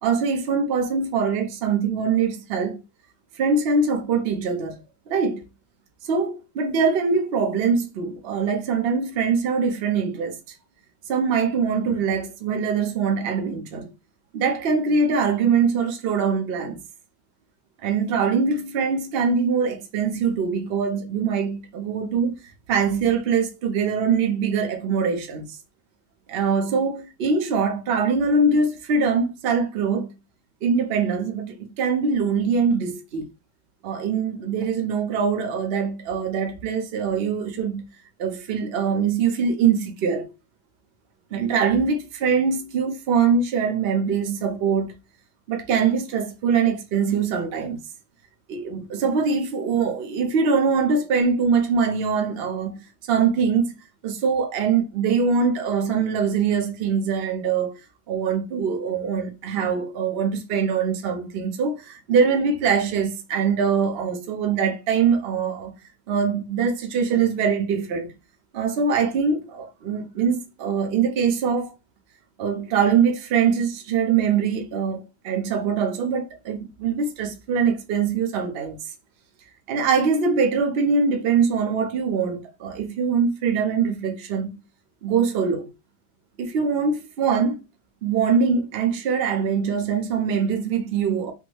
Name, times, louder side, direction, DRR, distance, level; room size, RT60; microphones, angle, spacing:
voice 1, 0.0-2.8 3.4-4.8 5.1-5.4 6.0-10.4 11.1-13.9 14.3-16.8 17.8-22.4 22.7-25.5 26.3-30.1 30.6-33.3 33.8-37.8 38.2-40.3 41.3-44.9 45.5-47.8 48.5-53.7 54.0-57.8 58.1-65.7 66.1-68.1 68.5-71.7 72.4-78.9 79.7-84.6 85.0-85.7 86.4-87.6 88.0-91.3, right 5 dB, 75° right, 0.5 m, -23 dB
3.7 x 2.0 x 3.1 m
omnidirectional pair, 1.9 m